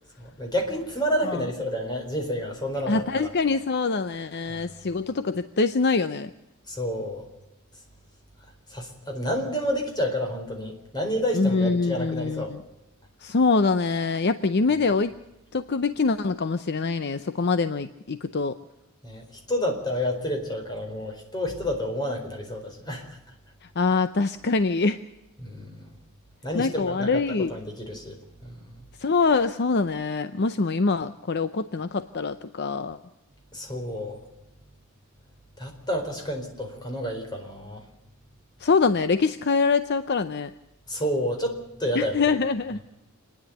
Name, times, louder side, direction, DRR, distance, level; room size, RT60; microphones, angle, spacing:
voice 1, 0.2-3.3 4.5-4.6 6.7-7.2 8.7-12.5 19.0-23.1 25.4-25.9 26.4-27.2 27.5-28.2 28.4-28.7 33.5-34.2 35.6-37.8 40.9-42.3, equal, 20° left, 2 dB, 4.4 m, -29 dB
voice 2, 2.9-6.3 11.3-12.6 13.2-15.2 15.5-18.5 23.8-25.0 26.5-27.5 29.0-33.0 38.6-40.5 41.9-42.8, left 4 dB, 50° left, 11 dB, 0.6 m, -24 dB
27.5 x 10.5 x 9.2 m, 0.93 s
head